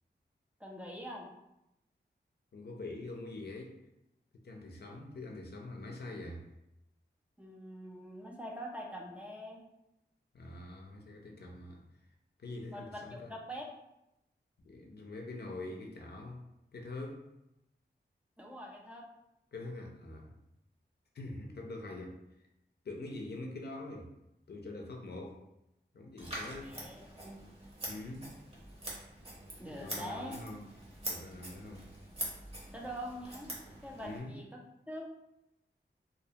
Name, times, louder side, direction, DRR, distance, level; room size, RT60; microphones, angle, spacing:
voice 1, 0.6-1.3 7.4-9.6 12.7-13.7 18.4-19.1 26.6-27.5 29.6-30.5 32.7-33.5 33.8-34.6 34.9-35.1, equal, 5° right, -2 dB, 0.4 m, -44 dB
voice 2, 2.5-3.8 4.4-6.5 10.3-11.8 12.4-13.3 14.6-16.5 16.7-17.2 19.5-20.3 21.1-22.2 22.8-24.1 24.5-25.4 25.9-26.8 27.9-28.3 29.8-30.6 31.1-31.8 34.0-34.4, left 2 dB, 60° left, 1 dB, 0.4 m, -44 dB
Scissors, 26.2-34.2, right 1 dB, 30° right, 0.8 m, -44 dB
2.4 x 2.2 x 2.7 m, 0.86 s
wide cardioid pair, 80°, 19 cm